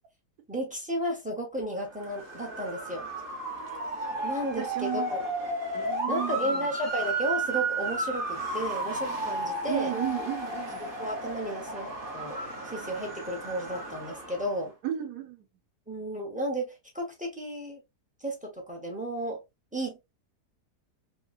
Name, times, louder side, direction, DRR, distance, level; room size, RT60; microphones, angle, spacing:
voice 1, 0.5-3.1 4.2-5.2 6.1-9.9 10.8-14.7 15.9-17.8 18.2-19.4 19.7-20.1, right 1 dB, 10° right, 0.6 m, -33 dB
Motor vehicle (road) / Siren, 1.9-14.6, right 2 dB, 40° right, 0.8 m, -33 dB
voice 2, 4.6-5.1 5.7-6.7 9.6-10.9 14.8-15.4, right 13 dB, 75° right, 1.3 m, -34 dB
3.1 x 3.0 x 2.4 m
omnidirectional pair, 1.7 m